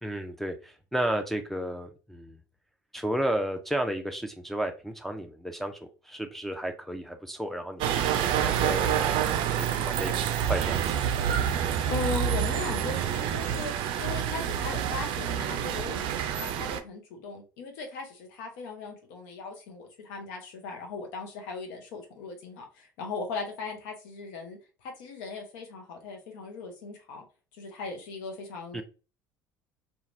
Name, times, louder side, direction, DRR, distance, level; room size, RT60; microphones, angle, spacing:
voice 1, 0.0-2.4 2.9-8.0 8.4-10.8 28.7-28.8, right 1 dB, ahead, 0.4 m, -33 dB
sound 1, 7.8-16.8, right 9 dB, 55° right, 0.4 m, -28 dB
voice 2, 11.9-27.2 27.5-28.8, left 4 dB, 70° left, 0.8 m, -38 dB
2.9 x 2.4 x 2.5 m
hypercardioid pair, 60°, 10 cm